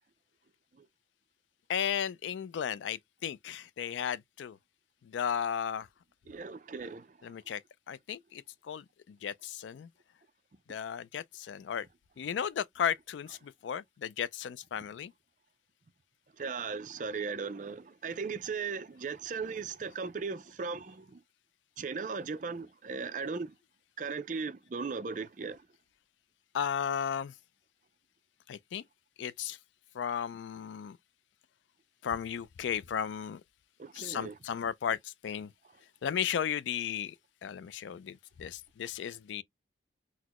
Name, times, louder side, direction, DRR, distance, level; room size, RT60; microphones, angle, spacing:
voice 1, 1.7-4.6 5.0-5.9 7.2-7.6 7.9-9.9 10.7-11.9 12.2-15.1 26.5-27.3 28.5-28.8 29.2-29.6 29.9-31.0 32.0-33.4 33.9-35.5 36.0-37.2 37.4-39.4, left 8 dB, 85° left, 0.3 m, -35 dB
voice 2, 6.3-7.1 16.4-21.2 21.8-23.5 24.0-25.6 33.8-34.3, right 5 dB, 45° right, 0.4 m, -37 dB
4.0 x 2.0 x 2.9 m
head